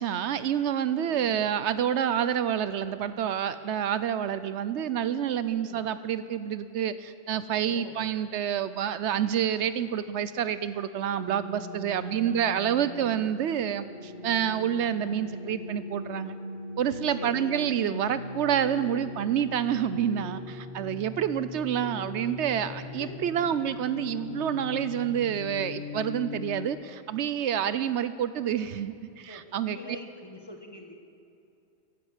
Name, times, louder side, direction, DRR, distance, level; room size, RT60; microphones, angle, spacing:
voice 1, 0.0-16.3 16.8-29.8, right 9 dB, 75° right, 13 dB, 0.9 m, -28 dB
voice 2, 1.0-1.5 5.5-5.9 7.7-8.0 12.0-12.7 17.1-17.6 23.0-23.6 29.2-30.9, left 1 dB, 20° left, 3 dB, 1.4 m, -45 dB
sound 1, 11.2-26.7, left 3 dB, 45° left, 1.3 m, -40 dB
14.5 x 11.5 x 8.1 m, 2.6 s
omnidirectional pair, 1.2 m